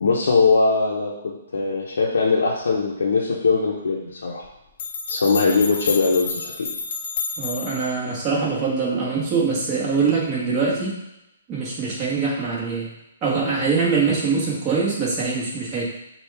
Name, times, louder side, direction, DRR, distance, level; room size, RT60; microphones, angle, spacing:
voice 1, 0.0-4.4 5.1-6.7, left 4 dB, 80° left, -4 dB, 0.8 m, -21 dB
sound 1, 4.4-4.5 4.8-7.9, left 5 dB, 45° left, 0.7 m, -30 dB
voice 2, 7.4-11.0 11.5-12.9 13.2-15.8, right 4 dB, 25° right, -6 dB, 1.5 m, -23 dB
5.8 x 2.4 x 3.4 m, 0.89 s
hypercardioid pair, 150°, 0 cm